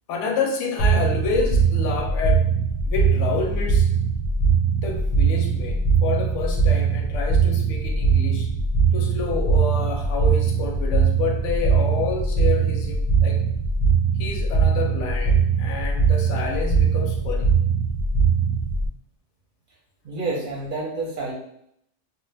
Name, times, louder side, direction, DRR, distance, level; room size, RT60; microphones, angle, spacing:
voice 1, 0.1-2.5 2.8-3.9 4.7-8.5 8.9-13.4 14.2-17.5, left 4 dB, 85° left, 2 dB, 0.9 m, -28 dB
sound 1, 0.8-18.9, right 5 dB, 60° left, 0.7 m, -21 dB
voice 2, 20.0-21.3, right 3 dB, 55° right, -4 dB, 0.6 m, -28 dB
2.2 x 2.1 x 3.2 m, 0.73 s
omnidirectional pair, 1.2 m